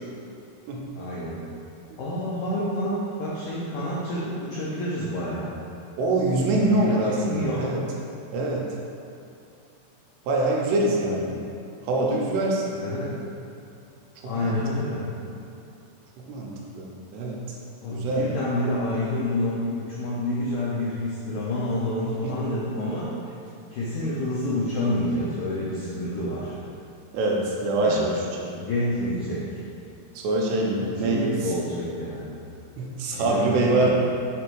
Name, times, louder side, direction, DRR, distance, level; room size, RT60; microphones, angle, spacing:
voice 1, 0.9-1.4 2.0-5.5 6.7-6.9 7.2-7.7 12.8-13.2 14.2-15.1 17.8-23.1 23.7-26.5 27.8-28.0 28.6-29.6 31.0-32.3 33.1-33.9, left 1 dB, 80° left, -8 dB, 1.8 m, -28 dB
voice 2, 6.0-7.8 8.3-8.6 10.3-11.4 11.8-12.8 14.2-14.9 16.3-16.9 17.1-17.6 17.9-18.3 22.2-22.3 27.1-28.5 30.2-31.5 32.8-33.9, right 2 dB, 90° right, -2 dB, 2.9 m, -24 dB
6.9 x 3.5 x 4.6 m, 2.6 s
omnidirectional pair, 4.8 m